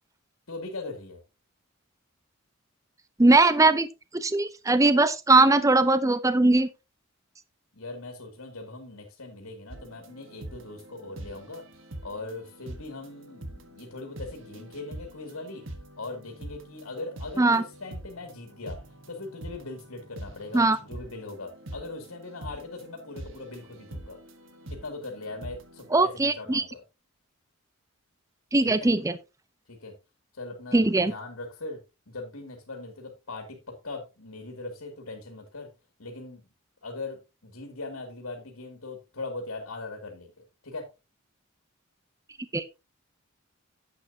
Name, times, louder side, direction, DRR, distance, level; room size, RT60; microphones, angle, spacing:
voice 1, 0.5-1.2 7.7-11.6 12.0-15.6 16.0-18.8 19.1-24.2 24.7-26.8 28.6-28.9 29.7-29.9 30.3-35.7 36.0-36.4 36.8-40.3 40.6-40.9, left 2 dB, 75° left, 2.5 m, -40 dB
voice 2, 3.2-3.9 4.1-6.7 17.4-17.6 20.5-20.8 25.9-26.6 28.5-29.1 30.7-31.1 42.5-42.6, right 2 dB, 15° right, 0.5 m, -20 dB
sound 1, 9.7-25.9, right 1 dB, 60° right, 1.3 m, -44 dB
11.0 x 8.1 x 2.7 m
head